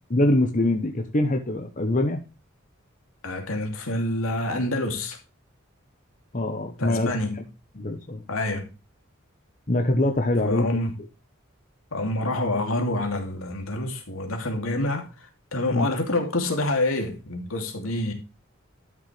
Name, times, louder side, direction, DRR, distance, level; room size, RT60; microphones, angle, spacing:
voice 1, 0.1-2.2 6.3-7.1 7.7-8.2 9.7-10.7 15.7-15.9, left 1 dB, 40° left, 1.1 m, -23 dB
voice 2, 3.2-5.2 6.8-7.4 8.3-8.7 10.4-10.9 11.9-18.1, left 1 dB, 80° left, 2.8 m, -27 dB
12.5 x 6.6 x 3.3 m
head